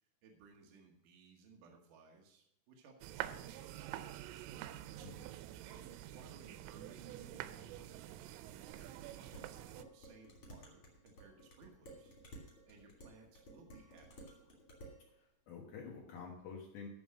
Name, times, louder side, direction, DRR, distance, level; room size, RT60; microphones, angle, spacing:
voice 1, 0.2-5.1 5.6-12.1 12.7-14.6, right 4 dB, 75° right, 1 dB, 1.9 m, -61 dB
sound 1, 3.0-9.8, right 13 dB, 90° right, 3.2 m, -47 dB
voice 2, 5.0-5.3 15.1-16.9, left 5 dB, 80° left, -1 dB, 1.8 m, -49 dB
Dishes pots and pans, 8.7-15.0, right 1 dB, 35° left, 2.8 m, -56 dB
13.0 x 5.5 x 6.4 m, 0.76 s
omnidirectional pair, 5.7 m